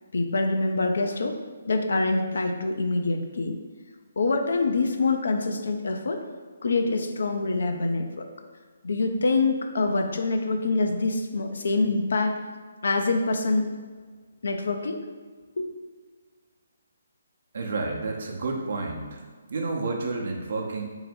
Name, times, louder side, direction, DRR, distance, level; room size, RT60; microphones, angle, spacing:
voice 1, 0.1-1.4 1.7-3.6 4.2-6.2 6.6-8.3 8.8-12.4 12.8-13.7 14.4-15.0 15.6-15.7, left 3 dB, 70° left, 5 dB, 0.4 m, -25 dB
voice 2, 17.5-19.2 19.5-20.8, right 3 dB, 60° right, 1 dB, 0.7 m, -30 dB
3.7 x 2.1 x 4.3 m, 1.5 s
figure-of-eight pair, 145°, 0 cm